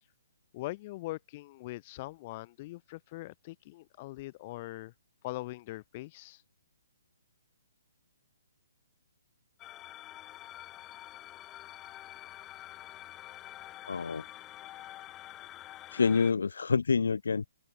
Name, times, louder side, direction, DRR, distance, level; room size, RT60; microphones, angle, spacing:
voice 1, 0.5-4.9 5.2-6.4, left 19 dB, 35° left, 2.6 m, -41 dB
sound 1, 9.6-16.3, left 14 dB, 20° left, 2.0 m, -47 dB
voice 2, 13.9-14.2 15.9-17.5, left 5 dB, 75° left, 0.7 m, -27 dB
hypercardioid pair, 140°, 0 cm